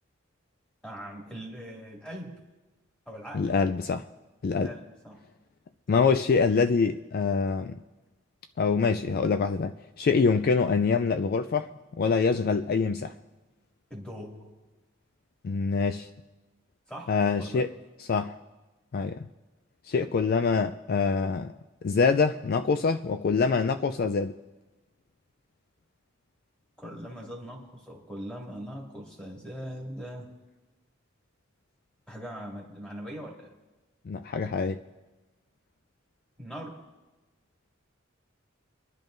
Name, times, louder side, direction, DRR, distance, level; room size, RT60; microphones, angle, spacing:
voice 1, 0.8-2.4 3.1-3.5 4.5-5.2 13.9-14.5 16.9-17.1 17.4-17.7 26.8-30.3 32.1-33.5 36.4-36.8, equal, 5° left, -2 dB, 2.3 m, -41 dB
voice 2, 3.3-4.0 4.4-4.7 5.9-7.8 8.6-11.7 12.0-13.1 15.4-16.1 17.1-17.7 18.1-18.4 18.9-19.3 19.9-21.5 21.8-24.4 34.1-34.8, left 5 dB, 50° left, 10 dB, 0.4 m, -25 dB
26.0 x 10.5 x 2.6 m, 1.1 s
head